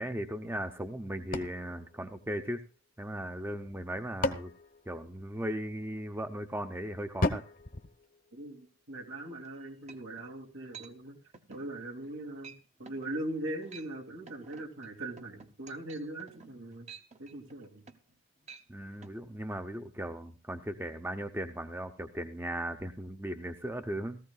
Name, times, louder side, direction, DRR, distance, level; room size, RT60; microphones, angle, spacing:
voice 1, 0.0-2.6 3.0-4.5 4.9-7.4 18.7-24.2, right 1 dB, 10° right, 7 dB, 0.6 m, -37 dB
sound 1, 1.3-2.9 3.7-5.7 7.2-8.8, left 2 dB, 40° left, 0.9 m, -36 dB
voice 2, 8.3-11.2 11.5-12.5 12.8-16.9 17.2-17.8, right 1 dB, 85° right, 2 dB, 2.6 m, -40 dB
sound 2, 9.4-9.5 9.9-10.3 10.7-10.9 11.3-11.7 12.0-12.2 12.4-12.6 12.9-13.1 13.5-13.9 14.3-18.2 18.4-18.7 19.0-19.2, right 6 dB, 35° right, 0.9 m, -51 dB
18.0 x 14.5 x 2.4 m, 0.33 s
head